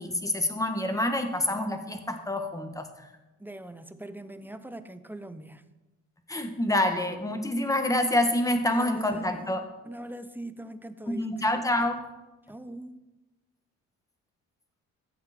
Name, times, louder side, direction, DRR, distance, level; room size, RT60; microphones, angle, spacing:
voice 1, 0.0-2.9 6.3-9.6 11.1-12.0, left 1 dB, 10° left, 6 dB, 1.5 m, -27 dB
voice 2, 3.4-5.7 8.7-9.5 9.9-11.3 12.5-13.0, right 1 dB, 5° right, 11 dB, 0.8 m, -42 dB
15.5 x 7.5 x 4.4 m, 1.1 s
cardioid pair, 90°, 30 cm